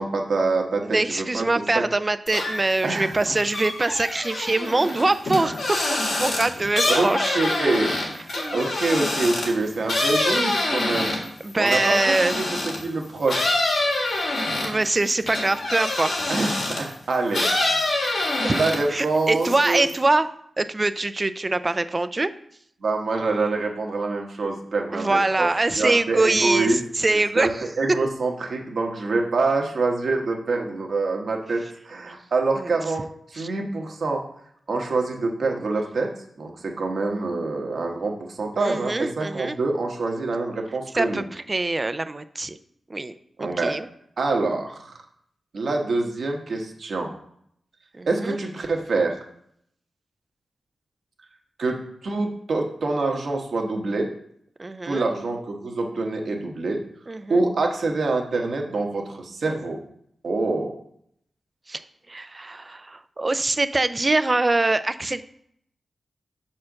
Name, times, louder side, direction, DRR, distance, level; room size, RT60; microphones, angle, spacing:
voice 1, 0.0-1.5 1.7-1.8 2.8-3.1 4.9-5.0 6.9-7.9 8.5-11.2 11.6-12.5 12.8-13.5 16.3-17.9 18.5-19.8 22.8-25.5 25.8-26.8 27.1-27.5 27.8-34.2 34.7-36.1 36.4-41.2 43.4-43.7 44.2-44.9 45.5-47.1 48.0-49.2 51.6-51.8 52.0-54.1 54.8-56.8 57.3-59.8 60.2-60.7, right 3 dB, 60° right, 2 dB, 1.2 m, -25 dB
voice 2, 0.8-5.6 5.9-7.4 8.3-8.6 11.4-12.5 14.6-16.2 17.9-18.6 18.9-20.3 20.6-22.3 24.9-27.5 32.6-32.7 33.3-33.5 38.6-39.6 40.9-42.6 42.9-43.1 43.4-43.9 48.0-48.4 54.6-55.1 57.1-57.5 61.7-61.8 62.1-65.2, right 2 dB, 25° right, 12 dB, 0.4 m, -24 dB
sound 1, 2.3-2.8 3.1-12.9 13.3-16.9 17.3-19.0 19.3-20.0, left 2 dB, 65° left, 2.0 m, -26 dB
5.7 x 4.4 x 6.4 m, 0.69 s
wide cardioid pair, 125°, 0 cm